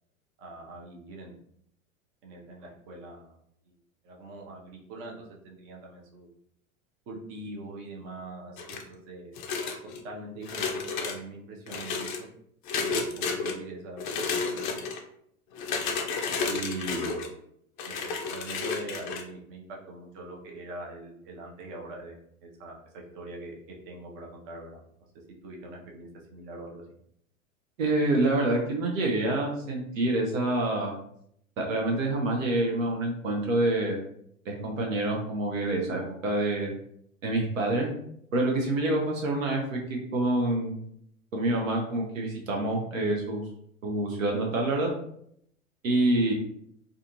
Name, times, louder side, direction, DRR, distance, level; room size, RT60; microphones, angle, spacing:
voice 1, 0.4-1.4 2.2-3.3 3.6-3.7 4.0-5.2 5.4-6.3 7.1-9.4 10.0-10.7 11.0-12.3 12.8-14.1 14.3-14.8 16.5-17.2 17.9-22.8 23.1-23.6 23.8-24.8 25.4-26.8, right 2 dB, 30° right, -1 dB, 0.6 m, -42 dB
sound 1, 8.6-8.9 9.4-10.0 10.4-11.2 11.7-12.2 12.7-13.5 14.0-15.0 15.5-17.3 17.8-19.2, left 4 dB, 40° left, 0.4 m, -31 dB
voice 2, 27.8-30.9 31.6-34.0 34.5-36.7 37.2-37.9 38.3-39.8 40.1-40.8 41.3-43.4 43.8-44.9 45.8-46.3, right 2 dB, 65° right, 0 dB, 0.7 m, -27 dB
2.4 x 2.4 x 2.7 m, 0.70 s
figure-of-eight pair, 90°, 42 cm